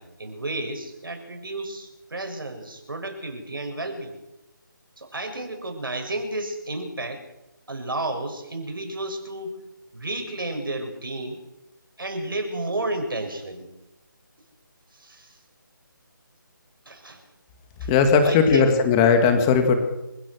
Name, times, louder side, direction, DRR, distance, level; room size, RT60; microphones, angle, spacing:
voice 1, 0.0-4.2 5.0-7.2 7.7-9.6 9.9-11.4 12.0-13.7 14.9-15.4 16.9-17.2 17.8-17.9 18.2-18.7, right 2 dB, 90° right, 6 dB, 7.1 m, -32 dB
voice 2, 17.9-19.7, left 5 dB, 10° left, 6 dB, 2.0 m, -18 dB
27.5 x 17.0 x 6.3 m, 0.93 s
figure-of-eight pair, 170°, 11 cm